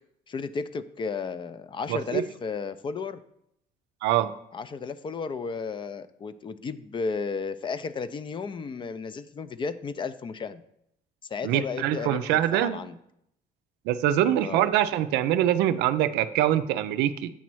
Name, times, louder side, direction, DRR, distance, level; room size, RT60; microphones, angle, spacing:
voice 1, 0.3-3.2 4.5-10.6 11.3-13.0 14.4-14.7, left 5 dB, 30° left, 13 dB, 0.4 m, -33 dB
voice 2, 1.9-2.2 4.0-4.3 11.4-12.8 13.9-17.3, right 12 dB, 90° right, 11 dB, 0.4 m, -24 dB
8.3 x 3.1 x 6.0 m, 0.77 s
cardioid pair, 110°, 17 cm